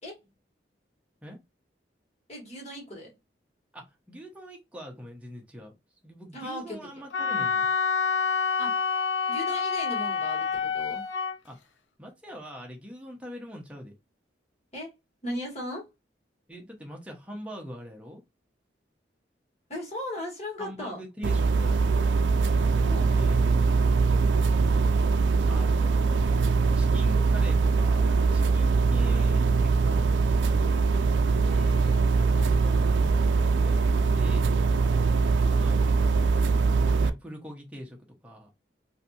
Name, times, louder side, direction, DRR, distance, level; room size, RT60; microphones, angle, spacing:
voice 1, 2.3-3.1 6.3-6.9 8.6-8.9 9.3-11.0 14.7-14.9 15.2-15.9 19.7-21.0 22.8-23.1 31.4-32.9, left 1 dB, 35° left, 1.5 m, -38 dB
voice 2, 3.7-5.7 6.0-7.7 11.4-11.6 12.0-13.9 16.5-18.2 20.6-22.2 23.1-23.8 24.4-24.9 25.5-25.9 26.7-30.3 33.6-34.5 35.5-36.1 36.8-38.5, equal, 5° right, 0.7 m, -43 dB
Wind instrument woodwind instrument, 7.1-11.3, left 5 dB, 90° left, 0.5 m, -27 dB
sound 1, 21.2-37.1, right 4 dB, 85° right, 0.4 m, -22 dB
3.3 x 2.6 x 2.7 m
head